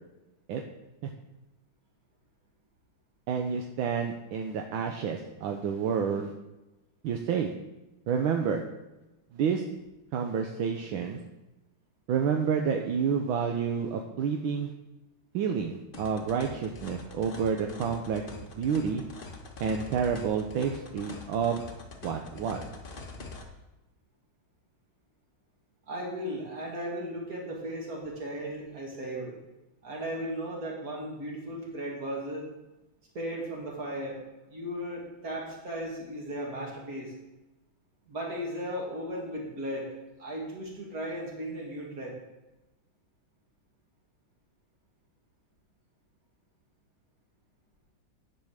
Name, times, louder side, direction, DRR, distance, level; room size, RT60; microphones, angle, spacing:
voice 1, 3.3-6.3 7.0-7.5 8.1-8.6 9.3-9.6 10.1-11.2 12.1-14.7 15.3-18.2 18.5-19.0 19.6-21.6 22.0-22.6, right 6 dB, 75° right, 3 dB, 1.5 m, -29 dB
sound 1, 15.9-23.4, left 3 dB, 35° left, 1.0 m, -44 dB
voice 2, 25.9-29.4 29.8-32.5 33.1-34.2 34.5-37.1 38.1-42.2, equal, 45° right, -2 dB, 2.7 m, -36 dB
10.5 x 5.5 x 6.4 m, 1.0 s
omnidirectional pair, 2.3 m